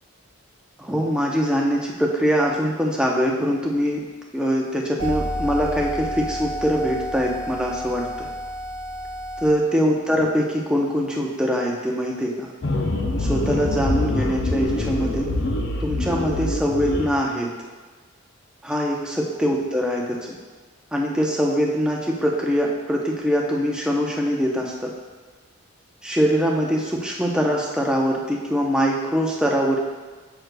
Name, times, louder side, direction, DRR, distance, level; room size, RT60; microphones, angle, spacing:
voice 1, 0.8-4.0 4.3-8.3 9.4-12.5 13.2-15.3 15.8-17.5 18.6-20.3 20.9-24.9 26.0-29.8, equal, 5° right, -2 dB, 0.6 m, -23 dB
sound 1, 5.0-9.5, equal, 80° right, 0.8 m, -30 dB
sound 2, 12.6-17.1, left 2 dB, 55° left, 0.6 m, -24 dB
7.8 x 6.3 x 2.2 m, 1.4 s
head